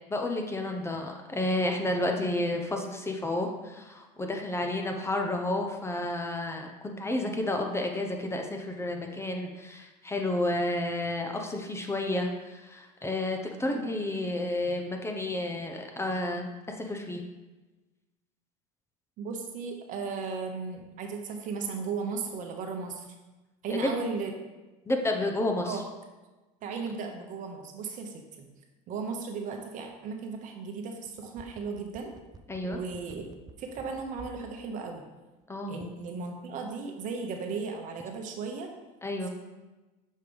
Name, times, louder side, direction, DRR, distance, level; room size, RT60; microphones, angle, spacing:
voice 1, 0.1-17.2 23.7-24.0 24.9-25.8 32.5-32.8 35.5-35.8 39.0-39.3, left 1 dB, 15° left, 3 dB, 0.8 m, -31 dB
voice 2, 19.2-23.1 23.6-24.3 25.6-25.8 26.6-28.5 28.9-32.1 32.6-33.3 33.6-35.0 35.7-38.7, right 5 dB, 55° right, 3 dB, 1.1 m, -36 dB
sound 1, 31.1-34.5 34.8-34.9, right 3 dB, 25° right, 0.5 m, -49 dB
6.5 x 3.2 x 5.3 m, 1.1 s
supercardioid pair, 100°, 16 cm